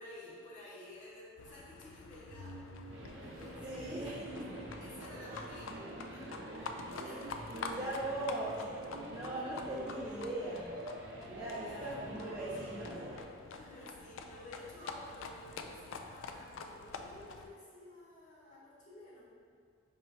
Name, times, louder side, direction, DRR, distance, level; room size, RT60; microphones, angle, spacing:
voice 1, 0.0-2.7 3.2-4.3 4.8-6.7 7.0-7.8 9.2-9.4 11.2-12.1 13.5-19.2, left 1 dB, 40° left, -7 dB, 1.1 m, -53 dB
Livestock farm animals working animals, 1.4-17.5, left 4 dB, 75° left, 0.3 m, -48 dB
sound 1, 2.3-13.2, right 1 dB, 65° right, 0.6 m, -46 dB
voice 2, 3.6-4.6 7.5-8.6 9.1-10.7 11.2-13.0, right 1 dB, 20° right, -11 dB, 0.6 m, -40 dB
5.4 x 3.0 x 3.1 m, 2.1 s
head